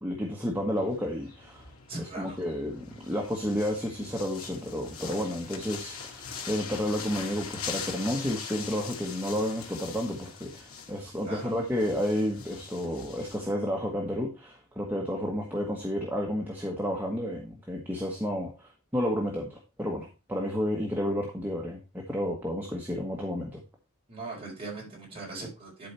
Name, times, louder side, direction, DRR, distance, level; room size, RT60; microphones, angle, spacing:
voice 1, 0.0-1.7 2.0-23.6, equal, 10° right, -1 dB, 1.4 m, -31 dB
sound 1, 0.8-13.5, left 6 dB, 80° left, 2.2 m, -42 dB
voice 2, 1.9-2.4 11.2-11.7 24.1-25.9, right 3 dB, 25° right, -3 dB, 4.6 m, -40 dB
11.5 x 4.8 x 4.4 m, 0.30 s
head